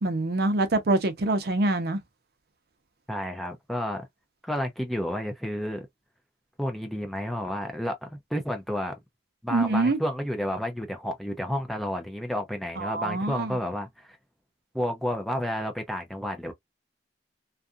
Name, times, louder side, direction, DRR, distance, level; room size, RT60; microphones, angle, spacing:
voice 1, 0.0-2.0 9.5-10.0 12.8-13.6, right 2 dB, 60° right, 0.6 m, -25 dB
voice 2, 3.1-4.1 4.4-5.9 6.6-8.9 9.4-14.2 14.7-16.5, equal, ahead, 0.4 m, -31 dB
2.6 x 2.4 x 2.3 m
head